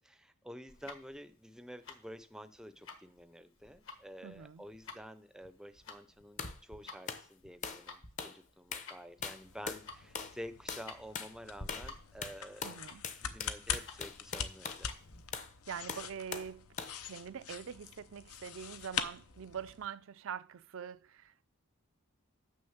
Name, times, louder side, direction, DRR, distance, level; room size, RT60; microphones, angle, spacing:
voice 1, 0.0-12.7 13.2-14.9, equal, 5° right, 0.5 m, -50 dB
Tick-tock, 0.7-15.3, left 3 dB, 60° left, 1.5 m, -52 dB
voice 2, 4.2-4.6 12.6-13.1 15.7-16.7 17.0-21.5, right 7 dB, 60° right, 0.4 m, -44 dB
sound 1, 6.4-6.6 7.1-7.3 7.6-7.9 8.2-8.4 8.7-8.9 9.2-9.9 10.1-10.4 10.7-10.9 11.1-11.3 11.7-11.9 12.2-14.8 15.3-15.5 15.9-16.5 16.8-17.0, left 5 dB, 35° left, 0.7 m, -41 dB
sound 2, 9.1-19.9, left 8 dB, 80° left, 0.7 m, -44 dB
6.4 x 6.2 x 7.1 m
head